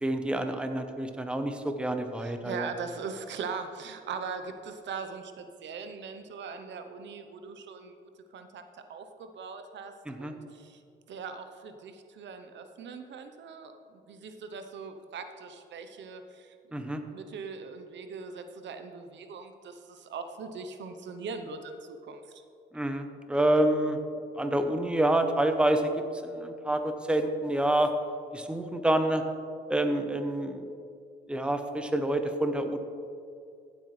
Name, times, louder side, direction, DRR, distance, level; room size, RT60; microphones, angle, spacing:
voice 1, 0.0-2.7 10.1-10.3 16.7-17.0 22.7-24.0 24.3-25.9 26.2-27.9 28.3-29.2 29.7-30.6 31.3-32.8, right 1 dB, 5° right, 6 dB, 0.8 m, -27 dB
voice 2, 2.2-8.6 8.9-10.8 11.1-22.4, right 5 dB, 65° right, 8 dB, 0.8 m, -41 dB
15.0 x 8.1 x 3.2 m, 2.4 s
cardioid pair, 90°, 20 cm